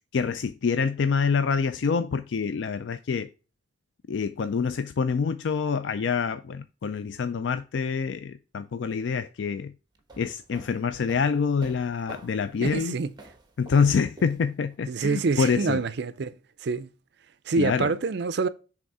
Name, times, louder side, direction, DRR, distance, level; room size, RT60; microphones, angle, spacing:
voice 1, 0.1-3.3 4.1-9.7 10.2-13.0 13.6-15.8 17.6-17.9, left 5 dB, 70° left, 0.4 m, -26 dB
sound 1, 9.9-14.8, right 2 dB, 20° right, 1.1 m, -48 dB
voice 2, 12.6-13.1 14.9-16.3 16.6-16.9 17.5-18.5, right 4 dB, 60° right, 0.4 m, -26 dB
7.8 x 3.6 x 4.8 m
head